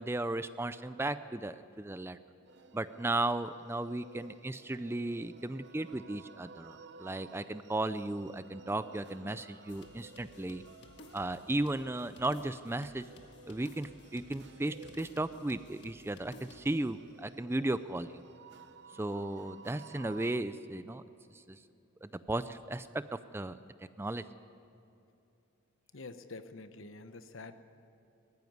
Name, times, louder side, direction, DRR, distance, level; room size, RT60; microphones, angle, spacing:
voice 1, 0.0-2.2 2.7-10.6 11.1-13.1 13.5-18.2 19.0-21.0 21.5-21.6 22.0-23.0 23.3-23.6 24.0-24.2, right 2 dB, 10° right, 13 dB, 0.4 m, -35 dB
sound 1, 2.4-20.4, right 4 dB, 55° right, 0.9 m, -55 dB
sound 2, 9.7-16.8, left 1 dB, 55° left, 1.6 m, -56 dB
voice 2, 25.9-27.6, left 3 dB, 70° left, 10 dB, 1.1 m, -47 dB
20.0 x 14.5 x 9.5 m, 2.8 s
head